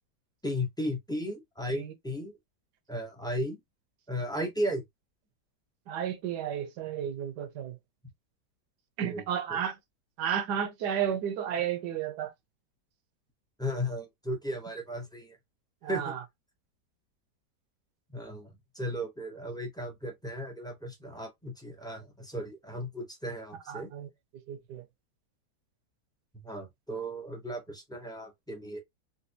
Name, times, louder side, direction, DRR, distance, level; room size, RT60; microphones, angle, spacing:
voice 1, 0.4-2.3 2.9-3.6 4.1-4.8 9.1-9.2 9.5-9.6 13.6-15.4 15.9-16.1 18.1-23.9 26.4-28.8, equal, 5° left, 0.4 m, -35 dB
voice 2, 5.9-7.8 9.0-9.8 10.2-12.3 15.8-16.2 23.7-24.1 24.5-24.8, right 9 dB, 75° right, 1.3 m, -32 dB
4.1 x 2.3 x 2.7 m
omnidirectional pair, 1.8 m